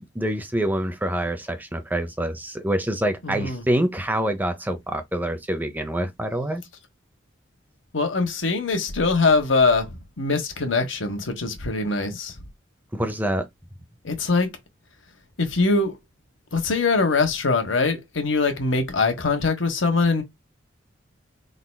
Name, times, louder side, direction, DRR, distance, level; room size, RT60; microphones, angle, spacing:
voice 1, 0.1-6.6 12.9-13.5, right 1 dB, 10° right, 0.7 m, -26 dB
voice 2, 3.2-3.6 7.9-12.3 14.0-14.5 15.4-16.0 16.5-20.2, left 3 dB, 85° left, 1.4 m, -22 dB
4.5 x 4.0 x 2.2 m
head